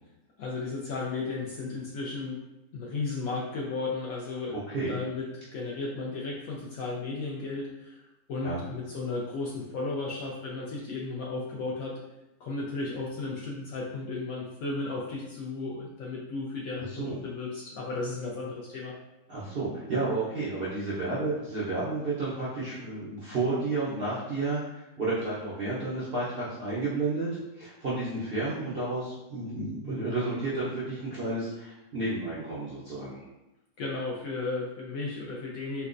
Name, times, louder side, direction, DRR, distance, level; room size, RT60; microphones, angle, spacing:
voice 1, 0.4-2.4 2.7-4.6 4.9-12.0 12.4-19.0 33.8-35.9, left 3 dB, 70° left, -4 dB, 0.8 m, -34 dB
voice 2, 4.5-5.0 8.4-8.6 16.9-17.2 19.3-24.6 25.0-27.3 27.6-33.2, right 3 dB, 60° right, -9 dB, 0.6 m, -31 dB
4.5 x 2.1 x 2.5 m, 0.96 s
omnidirectional pair, 1.9 m